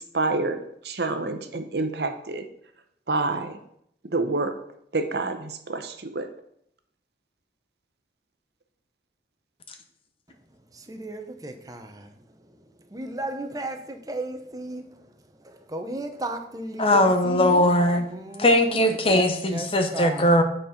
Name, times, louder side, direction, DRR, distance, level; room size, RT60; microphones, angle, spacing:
voice 1, 0.1-0.6 0.8-2.4 3.1-3.6 4.1-4.5 4.9-6.2, right 3 dB, 65° right, 0.8 m, -27 dB
voice 2, 10.7-12.1 12.5-15.1 15.4-17.7 18.1-19.0 19.3-19.7 19.9-20.4, right 2 dB, 20° right, 0.8 m, -35 dB
voice 3, 16.8-18.1 18.4-20.4, left 1 dB, 30° left, 0.8 m, -20 dB
9.1 x 4.4 x 5.2 m
head